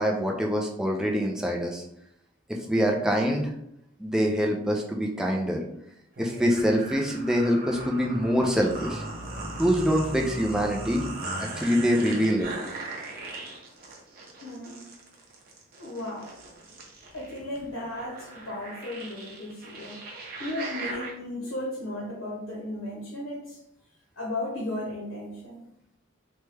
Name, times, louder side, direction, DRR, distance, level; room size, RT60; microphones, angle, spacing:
voice 1, 0.0-1.8 2.5-3.5 4.0-5.6 6.2-9.0 9.6-11.0 11.4-12.5, equal, 5° right, 0 dB, 0.3 m, -25 dB
sound 1, 6.2-21.1, right 2 dB, 50° right, 0.6 m, -39 dB
voice 2, 14.4-14.9 15.8-16.4 17.1-20.0 20.4-23.6 24.2-25.6, left 1 dB, 90° left, -2 dB, 0.8 m, -35 dB
3.0 x 2.2 x 3.2 m, 0.77 s
head